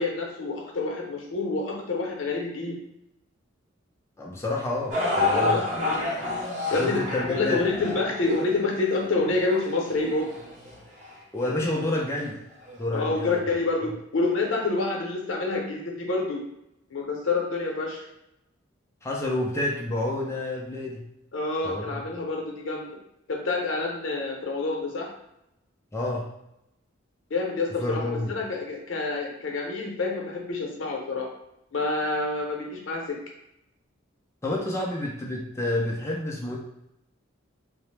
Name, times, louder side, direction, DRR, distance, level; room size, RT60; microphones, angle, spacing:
voice 1, 0.0-2.8 5.3-6.1 6.7-7.0 7.3-10.3 12.9-16.4 16.9-18.1 21.3-22.9 23.3-25.1 27.3-31.3 31.7-33.1, left 3 dB, 80° left, 0 dB, 0.6 m, -28 dB
voice 2, 4.2-5.7 6.8-7.6 11.3-12.4 12.8-13.4 19.0-21.0 21.6-22.0 25.9-26.2 27.8-28.3 34.4-36.6, left 1 dB, 15° left, -3 dB, 0.4 m, -29 dB
sound 1, 4.9-11.1 11.8-11.9 12.7-12.8, left 2 dB, 40° right, 0.7 m, -29 dB
2.8 x 2.0 x 3.1 m, 0.83 s
head